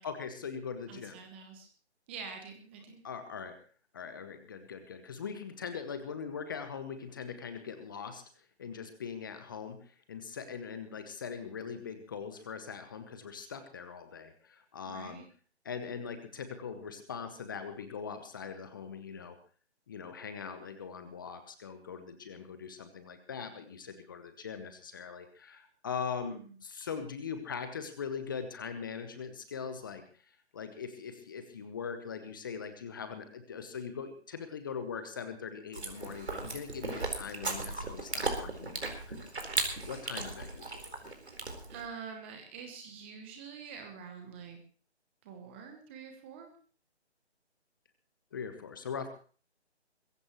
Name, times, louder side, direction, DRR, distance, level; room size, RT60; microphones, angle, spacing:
voice 1, 0.0-1.2 3.0-3.6 3.9-8.2 8.6-15.2 15.6-19.4 19.9-39.3 39.9-40.9 48.3-49.1, left 6 dB, 20° left, 9 dB, 1.0 m, -41 dB
voice 2, 0.9-1.7 2.1-3.0 14.8-15.3 26.2-26.5 41.7-44.6 45.2-46.5, right 6 dB, 10° right, 5 dB, 1.0 m, -46 dB
Chewing mastication, 35.7-41.9, right 3 dB, 65° right, 4.4 m, -37 dB
22.0 x 15.5 x 3.1 m, 0.41 s
figure-of-eight pair, 150°, 34 cm